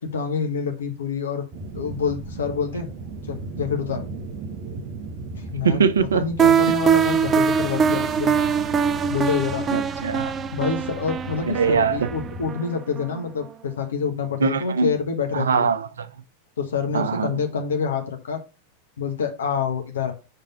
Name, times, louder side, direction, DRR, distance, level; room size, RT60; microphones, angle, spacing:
voice 1, 0.0-1.5 1.7-2.9 3.3-4.0 5.4-5.8 6.1-8.3 9.1-9.7 10.5-15.7 16.6-18.4 19.0-20.1, left 6 dB, 65° left, 1.0 m, -27 dB
sound 1, 1.5-12.5, right 3 dB, 40° right, 0.8 m, -36 dB
voice 2, 5.6-6.3 9.7-10.3 11.5-12.1 14.4-14.9 15.3-16.1 16.9-17.3, right 6 dB, 65° right, 0.5 m, -22 dB
sound 2, 6.4-13.2, right 7 dB, 25° right, 0.4 m, -22 dB
5.8 x 3.5 x 5.5 m
figure-of-eight pair, 90°, 0 cm